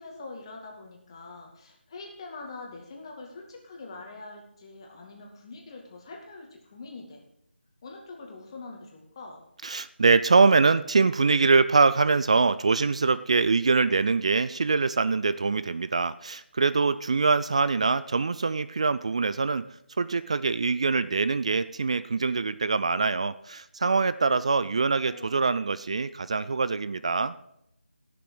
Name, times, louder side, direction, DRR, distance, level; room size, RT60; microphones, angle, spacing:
voice 1, 0.0-7.2 7.8-9.4 24.8-25.4, left 3 dB, 25° left, 1 dB, 2.4 m, -44 dB
voice 2, 9.6-19.6 20.0-27.3, right 4 dB, 35° right, 16 dB, 0.4 m, -24 dB
17.0 x 7.0 x 4.8 m, 0.77 s
figure-of-eight pair, 160°, 6 cm